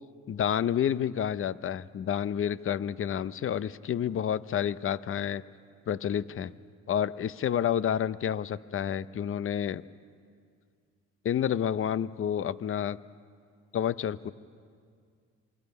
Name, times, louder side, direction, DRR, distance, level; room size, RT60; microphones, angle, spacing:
voice 1, 0.3-5.4 5.9-6.5 6.9-9.8 11.2-13.0 13.7-14.3, left 9 dB, 45° left, 16 dB, 0.6 m, -29 dB
27.5 x 23.0 x 5.4 m, 2.1 s
cardioid pair, 90°, 30 cm